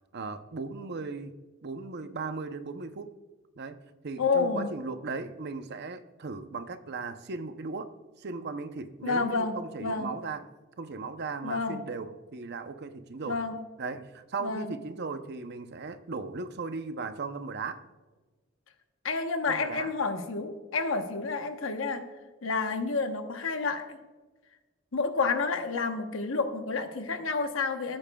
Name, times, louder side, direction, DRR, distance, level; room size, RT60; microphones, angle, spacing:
voice 1, 0.1-1.3 1.6-3.1 3.6-7.9 8.2-10.4 10.8-13.4 13.8-17.8 19.5-19.9, right 4 dB, 55° right, 10 dB, 0.6 m, -37 dB
voice 2, 4.2-4.7 9.0-10.1 11.4-11.8 13.3-13.6 14.4-14.7 19.0-22.1 22.4-24.0 24.9-28.0, left 4 dB, 75° left, 7 dB, 1.0 m, -29 dB
16.0 x 8.7 x 2.3 m, 1.3 s
head